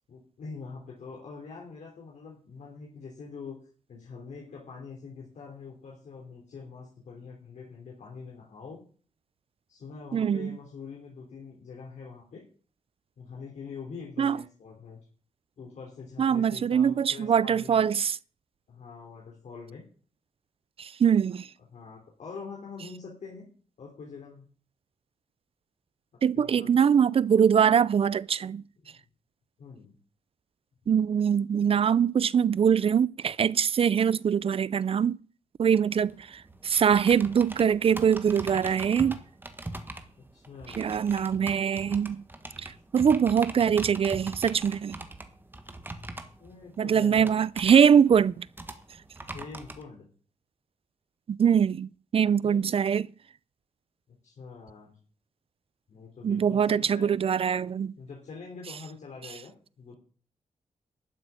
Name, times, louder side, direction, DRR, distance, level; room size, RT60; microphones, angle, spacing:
voice 1, 0.1-3.6 3.9-8.8 9.7-12.4 13.2-15.0 15.6-17.8 18.7-19.8 21.7-23.5 23.8-24.5 26.3-26.7 28.8-29.0 29.6-29.9 40.3-40.9 46.4-47.3 49.3-50.1 52.4-52.7 54.2-55.0 55.9-57.1 58.0-60.0, left 5 dB, 75° left, 3.2 m, -44 dB
voice 2, 10.1-10.6 14.2-14.4 16.2-18.2 20.8-21.5 26.2-28.6 30.9-35.2 35.6-39.2 40.8-42.2 42.6-45.0 46.8-48.5 51.3-53.1 56.2-57.9, right 7 dB, 50° right, 0.5 m, -23 dB
sound 1, 35.7-49.8, right 2 dB, 15° right, 1.4 m, -42 dB
12.5 x 6.3 x 8.9 m
wide cardioid pair, 105°, 12 cm